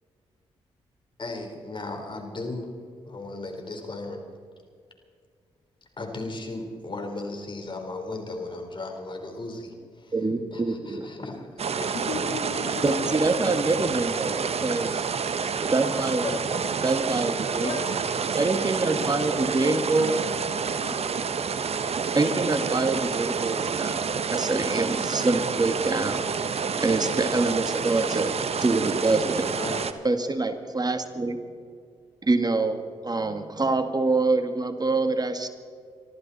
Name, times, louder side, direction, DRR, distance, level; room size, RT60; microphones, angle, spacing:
voice 1, 1.2-2.7 3.0-4.2 5.8-10.1 10.5-12.0 15.3-15.7 16.2-16.5 29.5-29.9, left 2 dB, 40° left, 4 dB, 4.0 m, -36 dB
voice 2, 10.1-11.1 12.8-15.0 15.7-16.2 16.8-17.7 18.4-20.1 22.1-24.0 24.3-26.3 26.8-29.5 30.0-31.4 32.2-35.5, right 3 dB, 30° right, 8 dB, 1.9 m, -25 dB
sound 1, 11.6-29.9, right 6 dB, 55° right, 1.1 m, -28 dB
voice 3, 11.9-13.0 16.1-16.2 17.6-18.1 18.8-21.0, left 6 dB, 80° left, 5 dB, 1.6 m, -37 dB
25.0 x 14.0 x 4.2 m, 2.1 s
hypercardioid pair, 40°, 12 cm